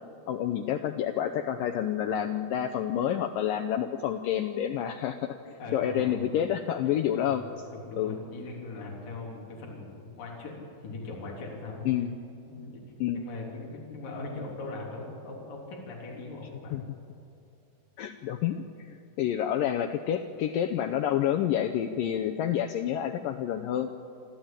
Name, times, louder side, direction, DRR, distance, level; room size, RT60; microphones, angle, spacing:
voice 1, 0.3-7.4 8.0-8.2 11.9-12.2 13.0-13.2 16.7-16.8 18.0-23.9, left 10 dB, 80° left, 5 dB, 2.0 m, -29 dB
voice 2, 5.6-6.2 7.2-7.4 7.7-12.0 12.5-12.8 13.1-16.8, left 3 dB, 55° left, -2 dB, 4.8 m, -40 dB
26.0 x 13.0 x 8.9 m, 2.8 s
omnidirectional pair, 4.8 m